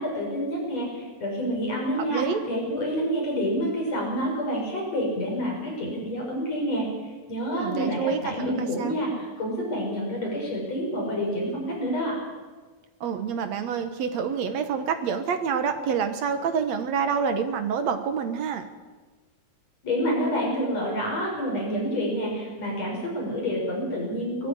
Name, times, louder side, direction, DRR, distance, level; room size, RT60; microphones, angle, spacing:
voice 1, 0.0-6.9 7.3-12.2 19.8-24.5, equal, 45° left, -2 dB, 7.0 m, -28 dB
voice 2, 2.1-2.4 7.5-8.9 13.0-18.7, right 6 dB, 60° right, 7 dB, 2.0 m, -27 dB
19.5 x 13.5 x 9.8 m, 1.3 s
omnidirectional pair, 4.3 m